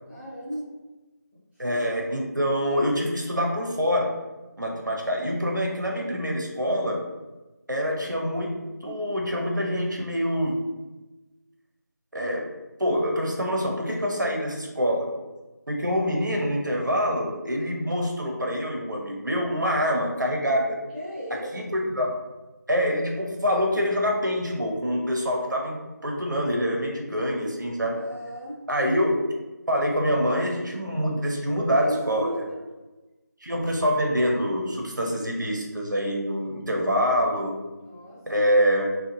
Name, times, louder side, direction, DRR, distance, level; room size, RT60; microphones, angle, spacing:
voice 1, 0.1-0.7 20.9-21.5 27.9-28.6 31.4-32.5 37.7-38.4, equal, ahead, -29 dB, 0.4 m, -35 dB
voice 2, 1.6-4.1 4.6-7.0 7.7-8.5 8.8-10.6 12.1-12.5 12.8-15.1 15.7-20.8 21.5-22.1 22.7-25.8 26.0-28.0 28.7-29.1 29.7-32.3 33.4-37.5 38.3-38.9, equal, 80° right, 0 dB, 0.7 m, -25 dB
2.7 x 2.3 x 2.7 m, 1.1 s
figure-of-eight pair, 165°, 10 cm